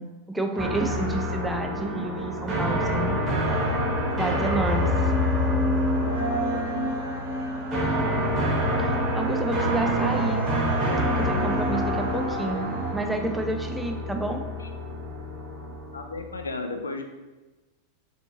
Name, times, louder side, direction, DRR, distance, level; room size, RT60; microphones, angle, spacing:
voice 1, 0.0-3.8 4.2-4.9 8.8-10.4 11.2-14.4, right 2 dB, 5° right, 4 dB, 0.4 m, -30 dB
sound 1, 0.6-16.5, equal, 25° right, 0.9 m, -27 dB
sound 2, 4.6-12.9, equal, 75° right, 1.2 m, -31 dB
voice 2, 6.0-6.9 14.6-14.7 15.9-17.0, left 2 dB, 75° left, 5 dB, 0.4 m, -34 dB
4.2 x 2.8 x 2.7 m, 1.2 s
figure-of-eight pair, 90°, 0 cm